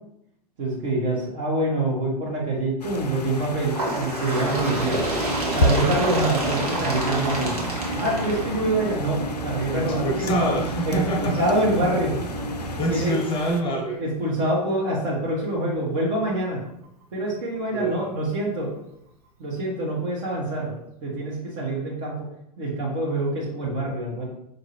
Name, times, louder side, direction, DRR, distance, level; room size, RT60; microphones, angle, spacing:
voice 1, 0.6-5.0 5.5-7.5 7.9-10.5 10.9-12.2 12.9-13.2 14.0-16.6 17.1-18.7 19.4-20.7 21.0-22.3 22.6-24.2, right 1 dB, 50° right, -5 dB, 1.2 m, -26 dB
sound 1, 2.8-13.6, left 1 dB, 80° left, 0.5 m, -33 dB
Bird, 3.7-9.1 10.0-10.1 10.5-10.6 11.5-11.6 12.5-12.6 13.5-13.6, right 2 dB, 70° right, 1.3 m, -28 dB
sound 2, 4.6-13.0, right 2 dB, 20° right, 1.1 m, -31 dB
voice 2, 9.7-11.7 12.6-14.0 17.7-18.1, right 1 dB, 25° left, 2 dB, 0.7 m, -26 dB
5.2 x 2.6 x 3.0 m, 0.78 s
figure-of-eight pair, 95°, 20 cm